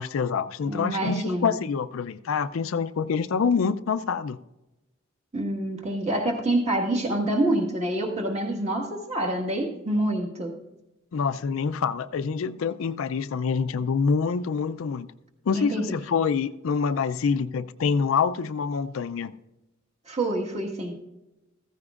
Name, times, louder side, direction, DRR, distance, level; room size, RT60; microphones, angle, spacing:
voice 1, 0.0-4.4 11.1-15.1 15.5-19.4, left 5 dB, 80° left, 0.4 m, -26 dB
voice 2, 0.7-1.5 5.3-10.6 15.5-15.8 20.1-20.9, right 1 dB, 35° right, 1.6 m, -27 dB
14.5 x 14.5 x 2.4 m
head